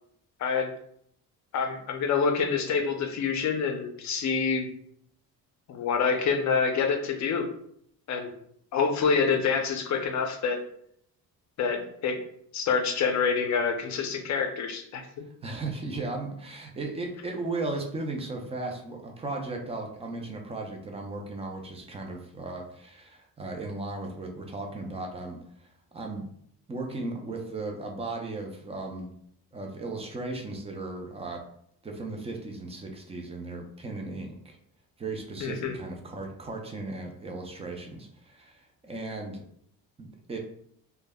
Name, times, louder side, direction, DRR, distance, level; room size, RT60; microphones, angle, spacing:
voice 1, 0.4-0.7 1.5-4.7 5.7-7.4 8.1-8.3 8.7-10.6 11.6-12.2 12.5-15.0 35.4-35.7, left 5 dB, 50° left, 4 dB, 0.5 m, -26 dB
voice 2, 15.4-26.3 26.7-29.1 29.5-31.4 31.8-34.6 35.0-39.4 40.0-40.4, right 2 dB, 15° right, 2 dB, 0.3 m, -36 dB
2.2 x 2.0 x 3.4 m, 0.67 s
cardioid pair, 145°, 38 cm